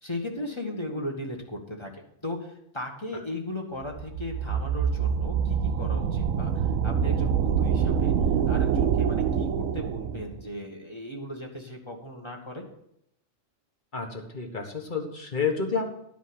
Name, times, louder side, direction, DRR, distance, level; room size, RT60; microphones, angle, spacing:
voice 1, 0.0-1.9 2.2-8.1 8.5-12.6, left 1 dB, 20° left, 1 dB, 1.5 m, -36 dB
sound 1, 3.9-10.4, right 7 dB, 85° right, 1.0 m, -25 dB
voice 2, 13.9-15.8, left 5 dB, 40° left, 3 dB, 1.7 m, -29 dB
11.5 x 5.1 x 7.8 m, 0.77 s
omnidirectional pair, 1.3 m